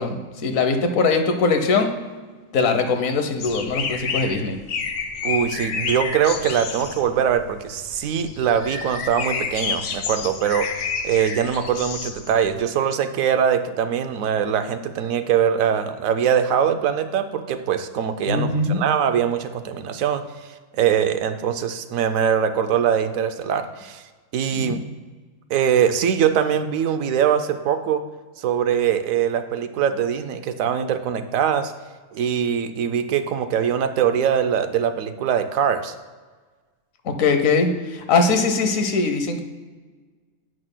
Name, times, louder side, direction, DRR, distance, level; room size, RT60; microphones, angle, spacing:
voice 1, 0.0-1.9 2.5-4.6 18.3-18.8 24.5-24.7 37.0-39.4, left 4 dB, 85° left, 6 dB, 1.3 m, -21 dB
sound 1, 3.4-12.6, left 5 dB, 70° left, 1.0 m, -30 dB
voice 2, 5.2-10.7 11.0-20.2 20.7-24.0 24.3-24.8 25.5-28.0 28.4-31.7 32.1-35.9, right 8 dB, 85° right, 9 dB, 1.0 m, -22 dB
11.0 x 8.8 x 2.2 m, 1.4 s
omnidirectional pair, 1.4 m